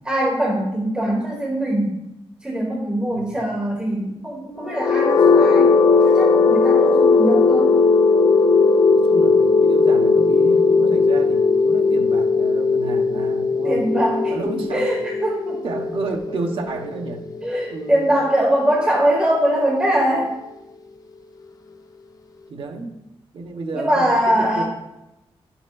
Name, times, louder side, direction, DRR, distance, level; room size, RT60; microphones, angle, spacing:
voice 1, 0.0-2.0 2.4-5.7 6.0-7.8 13.6-15.6 17.4-20.3 23.7-24.6, right 1 dB, 10° right, -3 dB, 1.1 m, -22 dB
sound 1, 4.7-18.6, left 4 dB, 35° left, 0.3 m, -17 dB
voice 2, 8.9-13.8 14.3-15.0 15.6-17.2 17.7-18.1 22.5-23.0 23.3-24.6, right 3 dB, 60° right, 3 dB, 0.9 m, -31 dB
11.0 x 6.9 x 2.3 m, 0.91 s
wide cardioid pair, 180°, 10 cm